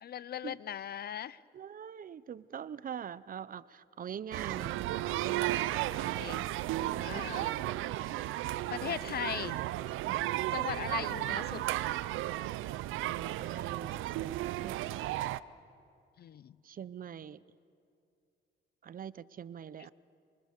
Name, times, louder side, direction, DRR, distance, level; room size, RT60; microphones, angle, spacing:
voice 1, 0.0-1.4 4.6-4.7 6.2-6.4 7.0-7.6 8.7-9.6 10.5-11.6 16.2-16.6, left 10 dB, 55° left, 19 dB, 0.6 m, -39 dB
voice 2, 1.5-5.6 6.0-6.5 6.9-7.6 8.9-9.0 10.1-10.3 13.0-15.3 16.6-17.4 18.8-19.9, right 8 dB, 45° right, 19 dB, 0.6 m, -44 dB
sound 1, 4.3-15.4, right 15 dB, 90° right, 0.5 m, -34 dB
25.5 x 24.5 x 6.6 m, 2.4 s
cardioid pair, 90°, 20 cm